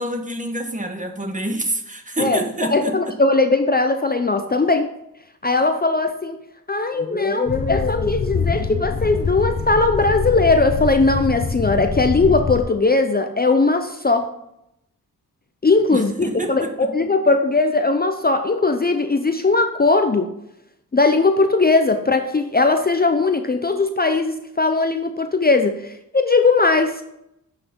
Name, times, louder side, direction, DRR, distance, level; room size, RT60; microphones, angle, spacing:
voice 1, 0.0-3.0 15.9-16.9, right 1 dB, 20° right, 5 dB, 1.4 m, -27 dB
voice 2, 2.7-4.9 5.4-6.4 6.7-14.3 15.6-20.3 20.9-27.0, left 3 dB, 25° left, 6 dB, 0.7 m, -19 dB
sound 1, 7.5-12.6, left 5 dB, 40° left, 1.0 m, -25 dB
8.3 x 5.7 x 5.4 m, 0.82 s
cardioid pair, 70°, 36 cm